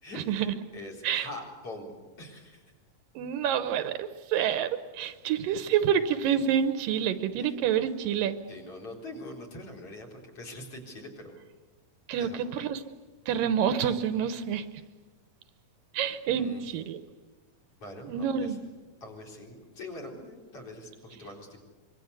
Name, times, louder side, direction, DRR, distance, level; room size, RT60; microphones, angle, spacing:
voice 1, 0.0-1.9 2.2-2.6 7.4-7.6 8.5-11.3 12.2-12.5 16.3-16.6 17.8-18.6 19.0-21.6, left 1 dB, 40° left, 4 dB, 4.9 m, -43 dB
voice 2, 3.2-8.4 12.1-12.8 13.3-14.7 15.9-17.0 18.0-18.6, right 8 dB, 75° right, 11 dB, 2.6 m, -28 dB
25.5 x 23.0 x 8.2 m, 1.3 s
omnidirectional pair, 4.0 m